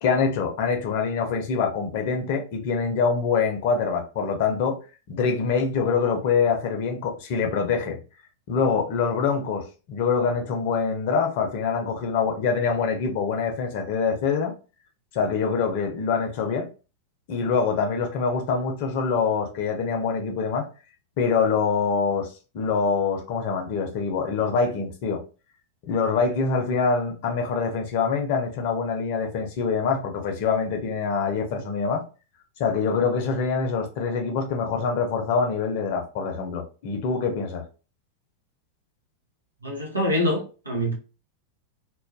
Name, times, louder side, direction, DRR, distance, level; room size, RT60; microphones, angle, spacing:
voice 1, 0.0-4.8 5.1-8.0 8.5-14.5 15.1-16.7 17.3-20.7 21.2-25.2 25.8-32.0 32.6-37.6, left 5 dB, 50° left, 0.6 m, -25 dB
voice 2, 39.6-40.9, left 1 dB, 85° right, 0.8 m, -25 dB
2.3 x 2.1 x 2.5 m
figure-of-eight pair, 90°, 0 cm